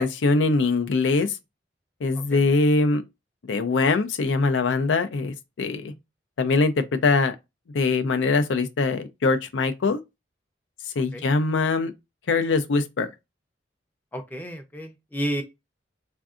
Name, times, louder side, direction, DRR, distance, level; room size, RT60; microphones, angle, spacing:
voice 1, 0.0-1.4 2.0-3.0 3.4-5.9 6.4-7.4 7.7-10.0 11.0-11.9 12.3-13.1, left 3 dB, 85° left, 0.5 m, -22 dB
voice 2, 14.1-15.4, right 1 dB, 10° left, 0.5 m, -31 dB
3.4 x 2.6 x 2.4 m
head